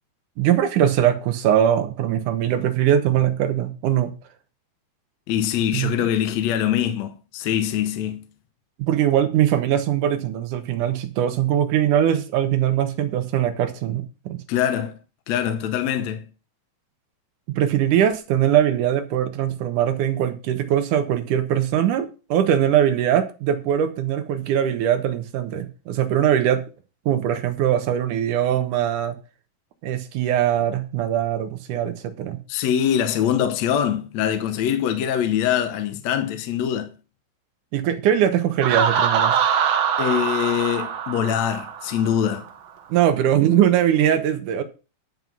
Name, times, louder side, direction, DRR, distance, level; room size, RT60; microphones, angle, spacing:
voice 1, 0.4-4.1 5.7-5.9 8.8-14.4 17.5-26.6 27.1-29.2 29.8-32.4 37.7-39.4 42.9-44.6, right 10 dB, 75° right, 2.5 m, -21 dB
voice 2, 5.3-8.2 14.5-14.9 15.3-16.2 32.5-36.9 40.0-42.5, left 9 dB, 65° left, 2.0 m, -23 dB
Laughter, 38.6-42.3, right 7 dB, 60° right, 2.2 m, -23 dB
10.5 x 5.4 x 6.1 m
omnidirectional pair, 3.7 m